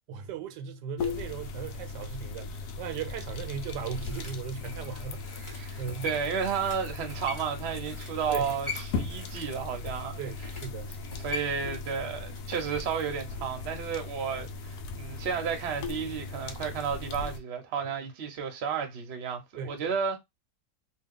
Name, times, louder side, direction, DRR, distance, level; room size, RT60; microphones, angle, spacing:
voice 1, 0.1-6.1 8.3-8.5 10.2-10.9 19.6-19.9, right 7 dB, 80° right, 1.1 m, -38 dB
sound 1, 1.0-17.4, left 4 dB, 70° left, 1.0 m, -38 dB
sound 2, 3.3-12.7 13.0-13.1, left 3 dB, 20° left, 1.0 m, -44 dB
voice 2, 5.5-10.5 11.1-20.2, right 6 dB, 50° right, 0.8 m, -32 dB
2.8 x 2.3 x 3.7 m
omnidirectional pair, 1.9 m